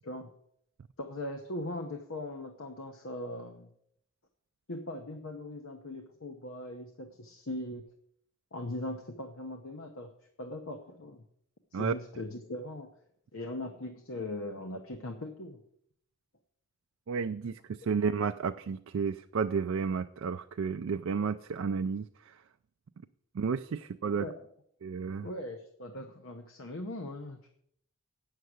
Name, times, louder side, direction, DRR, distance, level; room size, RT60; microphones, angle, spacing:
voice 1, 1.0-3.7 4.7-7.9 8.5-10.1 10.4-11.2 11.7-12.9 13.3-15.6 17.8-18.0 24.2-24.4 25.2-27.5, left 1 dB, 65° left, 5 dB, 0.9 m, -40 dB
voice 2, 17.1-22.3 23.3-24.3 24.8-25.3, right 5 dB, 65° right, 8 dB, 0.4 m, -32 dB
8.6 x 6.5 x 7.9 m, 0.71 s
head